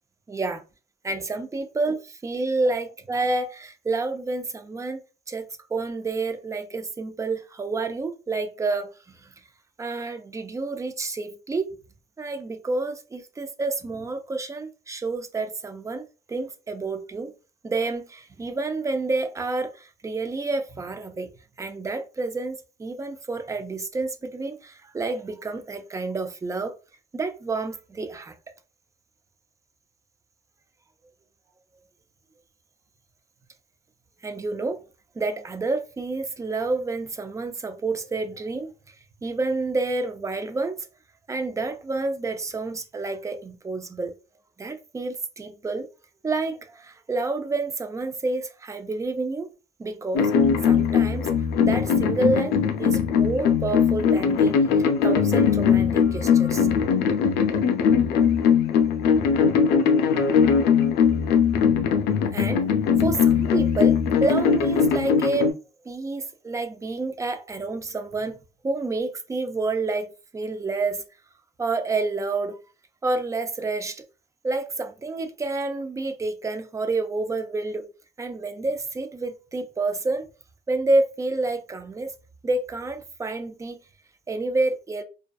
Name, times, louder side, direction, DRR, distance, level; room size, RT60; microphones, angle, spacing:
voice 1, 0.3-0.6 1.0-5.0 5.3-8.9 9.2-9.3 9.8-11.7 12.2-17.3 17.6-21.3 21.6-26.7 27.1-28.3 34.2-34.8 35.2-38.7 39.2-40.9 41.3-44.1 44.6-45.9 46.2-49.5 49.8-50.3 50.6-51.3 51.6-56.7 62.3-62.7 63.0-65.6 65.8-68.4 68.6-71.0 71.6-72.6 73.0-74.0 74.4-77.9 78.2-80.3 80.7-82.2 82.4-83.8 84.3-85.0, right 3 dB, 20° right, 0.4 m, -29 dB
sound 1, 50.1-65.5, left 7 dB, 85° left, 0.5 m, -20 dB
2.5 x 2.2 x 2.3 m
cardioid pair, 110°, 17 cm